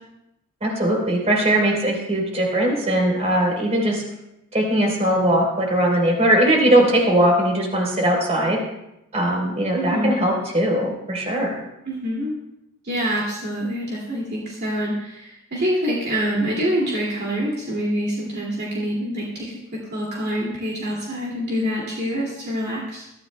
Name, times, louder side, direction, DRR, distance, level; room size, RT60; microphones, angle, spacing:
voice 1, 0.6-4.0 4.5-8.6 9.1-11.6, right 1 dB, 30° right, -1 dB, 3.7 m, -20 dB
voice 2, 9.7-10.2 11.8-12.3 12.8-19.6 19.9-23.1, equal, 50° right, -4 dB, 2.4 m, -26 dB
22.5 x 13.5 x 2.2 m, 0.89 s
head